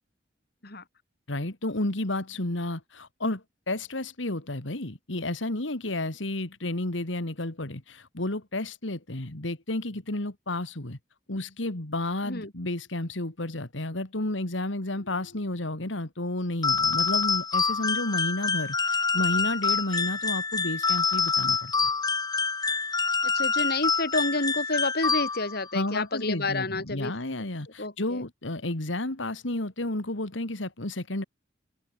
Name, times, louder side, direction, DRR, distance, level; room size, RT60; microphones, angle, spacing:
voice 1, 1.3-11.0 11.3-21.9 25.7-31.2, left 1 dB, 80° left, 2.5 m, -31 dB
sound 1, 16.6-25.7, left 4 dB, 20° left, 1.3 m, -26 dB
voice 2, 23.2-27.1 27.8-28.2, left 2 dB, 55° left, 4.7 m, -29 dB
head